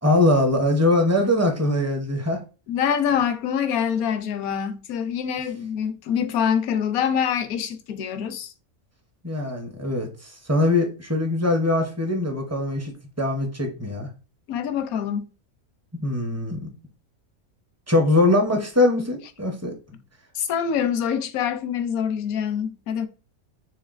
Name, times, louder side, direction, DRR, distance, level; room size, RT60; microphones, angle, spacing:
voice 1, 0.0-2.4 9.2-14.1 16.0-16.7 17.9-19.7, left 2 dB, 15° right, 0.5 m, -22 dB
voice 2, 2.7-8.5 14.5-15.3 20.3-23.1, left 8 dB, 85° left, 1.1 m, -25 dB
6.4 x 3.4 x 2.5 m
omnidirectional pair, 1.5 m